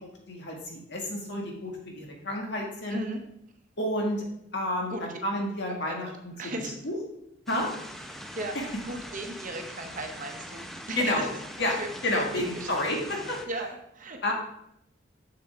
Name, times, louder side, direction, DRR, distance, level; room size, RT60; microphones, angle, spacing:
voice 1, 0.0-3.0 3.8-4.2 4.5-6.3 6.8-7.0 7.5-7.7 8.5-8.6 10.9-11.3 11.6-13.4 14.2-14.3, left 1 dB, 65° left, 0 dB, 1.8 m, -30 dB
voice 2, 2.9-3.2 4.9-5.1 5.7-6.8 8.3-8.5 8.8-11.3 11.6-11.9 12.3-12.7 13.5-14.3, right 2 dB, 45° right, 4 dB, 1.0 m, -37 dB
sound 1, 7.5-13.4, equal, ahead, 0.6 m, -42 dB
7.0 x 6.8 x 3.6 m, 0.76 s
head